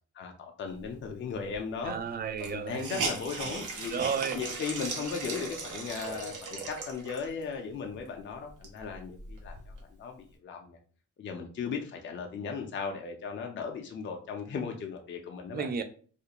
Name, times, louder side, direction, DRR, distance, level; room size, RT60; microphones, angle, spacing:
voice 1, 0.1-2.0 2.4-4.0 4.3-10.8 11.2-15.7, left 5 dB, 40° left, 2 dB, 0.5 m, -37 dB
Hiss, 1.5-1.6 1.9-2.0 2.4-7.4 8.0-8.1 8.4-9.8, right 4 dB, 80° right, 0.8 m, -38 dB
voice 2, 1.8-3.1 3.9-4.4 15.5-15.8, right 7 dB, 35° right, 9 dB, 0.4 m, -33 dB
2.4 x 2.1 x 2.9 m, 0.43 s
cardioid pair, 90°, 30 cm